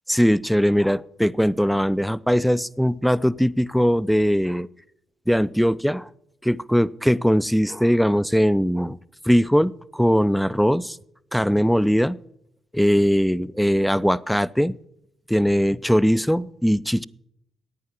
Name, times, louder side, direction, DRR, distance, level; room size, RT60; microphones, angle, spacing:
voice 1, 0.1-4.7 5.3-6.1 6.4-9.0 9.2-11.0 11.3-12.2 12.7-14.8 15.3-17.0, equal, ahead, 18 dB, 0.5 m, -20 dB
14.0 x 9.5 x 6.4 m, 0.77 s
hypercardioid pair, 40°, 0 cm